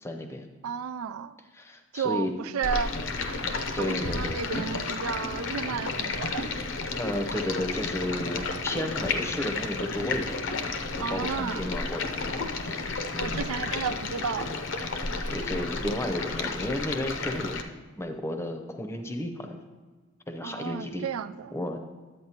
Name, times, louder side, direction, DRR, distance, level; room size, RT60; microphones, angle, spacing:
voice 1, 0.0-0.5 1.5-2.3 3.7-4.4 6.9-10.4 10.9-12.8 13.1-13.4 15.3-17.7 17.9-19.6 20.3-21.0 21.5-21.8, left 1 dB, 10° left, 5 dB, 0.6 m, -33 dB
voice 2, 0.6-1.3 1.9-3.0 3.8-6.5 11.0-11.7 13.1-14.5 20.4-21.5, right 6 dB, 90° right, 13 dB, 0.4 m, -32 dB
Stream, 2.6-17.6, left 3 dB, 60° left, 0.6 m, -32 dB
10.5 x 8.5 x 2.9 m, 1.4 s
head